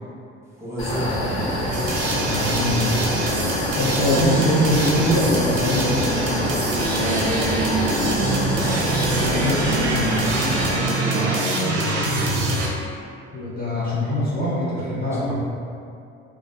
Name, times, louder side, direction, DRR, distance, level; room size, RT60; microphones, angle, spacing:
voice 1, 0.5-1.6 6.9-8.4 10.7-12.4 15.1-15.3, equal, 10° right, -9 dB, 0.7 m, -29 dB
sound 1, 0.8-10.7, left 1 dB, 55° left, 1.1 m, -26 dB
sound 2, 1.7-12.7, right 2 dB, 50° right, 0.5 m, -24 dB
voice 2, 2.2-3.2 3.8-6.1 9.2-10.3 13.3-15.3, left 1 dB, 30° left, -8 dB, 0.6 m, -23 dB
2.4 x 2.3 x 2.2 m, 2.4 s
hypercardioid pair, 65°, 33 cm